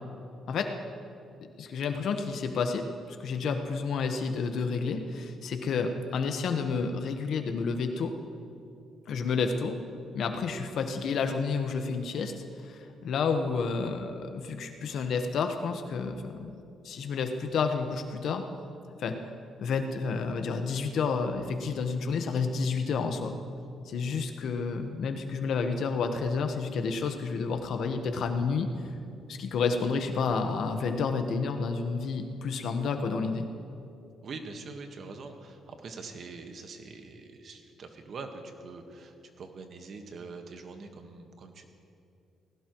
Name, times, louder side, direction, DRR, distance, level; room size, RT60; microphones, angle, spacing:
voice 1, 1.6-8.1 9.1-9.8 10.1-12.3 12.6-16.5 16.8-18.4 19.0-19.2 19.6-23.3 23.9-28.7 29.3-33.5, left 5 dB, 70° left, 6 dB, 1.2 m, -30 dB
voice 2, 34.2-41.7, right 4 dB, 55° right, 5 dB, 1.4 m, -44 dB
19.5 x 16.5 x 3.1 m, 2.6 s
cardioid pair, 90°, 0 cm